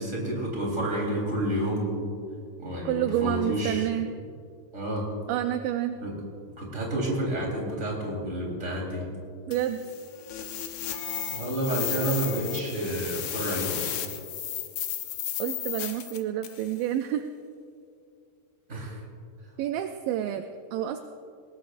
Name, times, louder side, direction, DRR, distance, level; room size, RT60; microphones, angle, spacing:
voice 1, 0.0-2.1 2.6-3.9 4.7-5.1 6.0-6.1 6.6-9.1 11.3-13.9 18.7-19.0, right 1 dB, 20° right, -3 dB, 4.0 m, -30 dB
voice 2, 2.9-4.1 5.3-6.0 9.5-9.8 15.4-17.3 18.7-19.0 19.6-21.0, right 12 dB, 80° right, 7 dB, 2.2 m, -29 dB
sound 1, 9.5-16.7, left 10 dB, 70° left, 1.9 m, -34 dB
21.5 x 19.5 x 2.6 m, 2.4 s
omnidirectional pair, 4.2 m